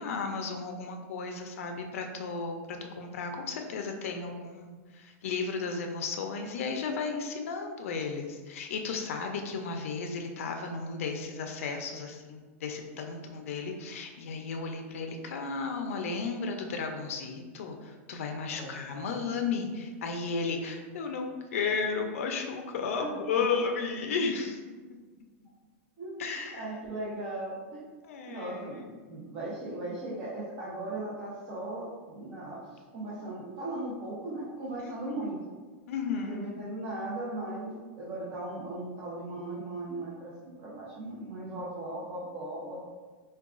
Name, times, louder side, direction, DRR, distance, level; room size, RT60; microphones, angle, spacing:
voice 1, 0.0-24.6 26.2-26.7 28.0-28.6 34.8-35.2 35.9-36.5, left 5 dB, 80° left, 4 dB, 0.4 m, -34 dB
voice 2, 18.5-19.1 23.0-23.6 26.0-27.8 28.2-35.4 36.3-42.9, right 2 dB, 35° right, -8 dB, 0.7 m, -38 dB
4.6 x 2.2 x 2.4 m, 1.4 s
supercardioid pair, 165°, 7 cm